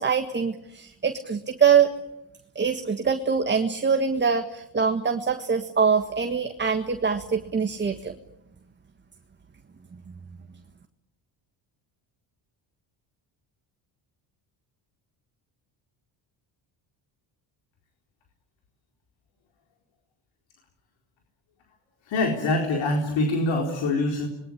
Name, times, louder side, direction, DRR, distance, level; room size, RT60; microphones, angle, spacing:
voice 1, 0.0-1.9 2.5-8.1, right 6 dB, 25° right, 6 dB, 1.6 m, -24 dB
voice 2, 22.1-24.3, left 2 dB, 75° left, 2 dB, 4.4 m, -24 dB
26.5 x 22.0 x 9.9 m, 0.87 s
cardioid pair, 120°, 46 cm